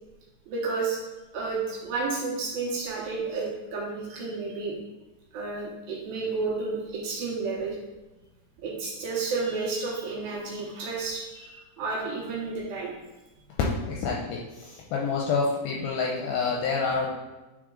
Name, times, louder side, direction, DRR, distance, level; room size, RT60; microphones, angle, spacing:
voice 1, 0.5-1.0 1.3-4.8 5.3-7.8 8.6-13.0, right 4 dB, 70° right, -3 dB, 2.5 m, -31 dB
voice 2, 13.9-17.1, left 4 dB, 80° left, -2 dB, 2.2 m, -28 dB
9.5 x 4.0 x 3.8 m, 1.1 s
omnidirectional pair, 4.9 m